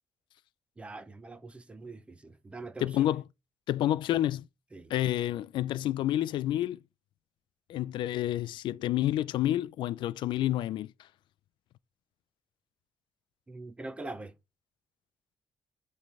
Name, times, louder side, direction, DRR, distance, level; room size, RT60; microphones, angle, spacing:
voice 1, 0.8-3.2 4.7-4.9 13.5-14.3, right 2 dB, 15° right, 0.5 m, -43 dB
voice 2, 2.8-3.2 3.7-4.4 4.9-6.8 7.7-10.9, left 13 dB, 80° left, 0.3 m, -29 dB
9.1 x 3.3 x 3.5 m
cardioid pair, 175°, 8 cm